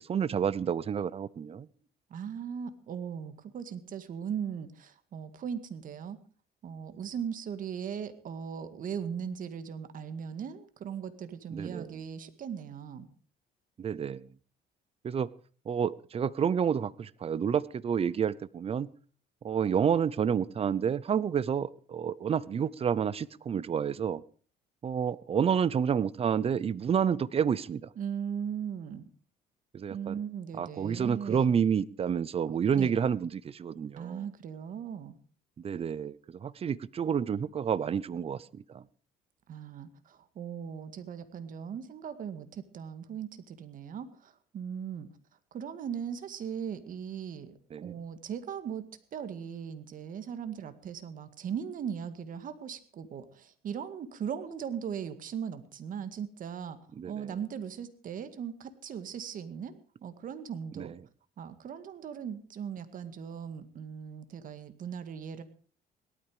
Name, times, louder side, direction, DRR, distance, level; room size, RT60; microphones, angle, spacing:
voice 1, 0.0-1.7 11.5-11.9 13.8-14.3 15.0-15.3 15.7-18.9 19.4-24.2 24.8-27.9 29.7-30.2 30.5-34.2 35.6-38.9 47.7-47.9 57.0-57.3 60.8-60.9, right 7 dB, 35° right, 19 dB, 0.7 m, -29 dB
voice 2, 2.1-6.2 6.6-13.1 28.0-29.0 29.9-31.5 32.8-32.9 34.0-35.2 39.5-45.1 45.5-48.8 49.1-56.8 57.1-60.9 61.4-65.4, right 7 dB, 55° right, 10 dB, 2.0 m, -38 dB
18.0 x 12.5 x 5.0 m, 0.42 s
cardioid pair, 110°, 17 cm